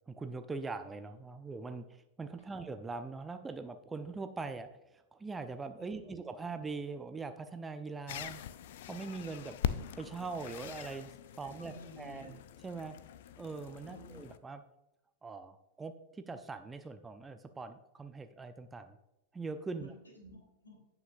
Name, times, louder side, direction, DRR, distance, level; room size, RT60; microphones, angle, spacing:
voice 1, 0.1-4.7 5.1-8.4 8.9-12.4 12.6-13.0 13.4-14.6 15.2-19.0 19.3-19.9, right 4 dB, 15° right, 9 dB, 0.6 m, -42 dB
voice 2, 5.8-6.2 11.4-12.3 13.8-14.2 19.8-20.8, equal, 80° left, 0 dB, 3.3 m, -53 dB
sound 1, 8.1-14.4, left 10 dB, 55° left, 0.5 m, -42 dB
17.0 x 6.0 x 2.6 m, 0.92 s
figure-of-eight pair, 90°, 0 cm